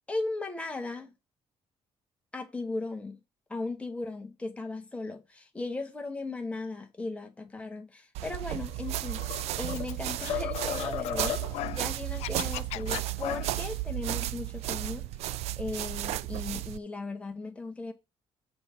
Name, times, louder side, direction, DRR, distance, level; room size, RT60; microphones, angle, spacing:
voice 1, 0.1-1.1 2.3-3.2 3.5-11.4 11.7-15.1 15.6-17.9, left 3 dB, 10° left, 1.1 m, -37 dB
sound 1, 8.1-16.8, right 16 dB, 75° right, 0.4 m, -34 dB
sound 2, 8.6-9.9 10.3-11.7, left 10 dB, 55° left, 0.8 m, -35 dB
Scratching (performance technique), 9.7-11.8 12.1-13.7, left 16 dB, 90° left, 0.4 m, -39 dB
7.9 x 3.4 x 5.9 m
cardioid pair, 175°, 11 cm